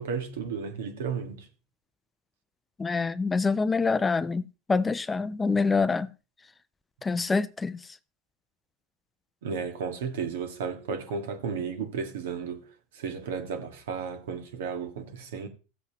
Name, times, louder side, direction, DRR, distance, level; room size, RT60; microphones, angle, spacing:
voice 1, 0.0-1.5 9.4-15.5, right 6 dB, 85° right, 1.8 m, -34 dB
voice 2, 2.8-6.1 7.0-7.8, left 4 dB, 15° left, 0.4 m, -26 dB
16.0 x 8.0 x 3.0 m
supercardioid pair, 115°, 0 cm